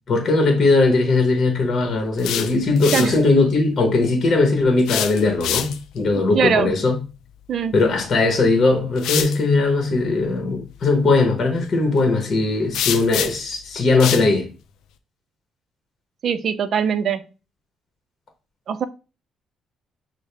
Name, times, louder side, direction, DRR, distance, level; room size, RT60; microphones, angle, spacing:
voice 1, 0.1-6.9 7.7-14.5, left 3 dB, 45° left, 1.1 m, -19 dB
sound 1, 2.0-3.2 4.8-6.0 8.0-8.2 9.0-9.4 12.7-13.5 14.0-14.3, left 10 dB, 85° left, 0.4 m, -26 dB
voice 2, 6.1-6.8 7.5-7.7 16.2-17.2 18.7-18.8, right 7 dB, 60° right, 0.5 m, -22 dB
6.2 x 2.1 x 3.3 m
cardioid pair, 90°, 0 cm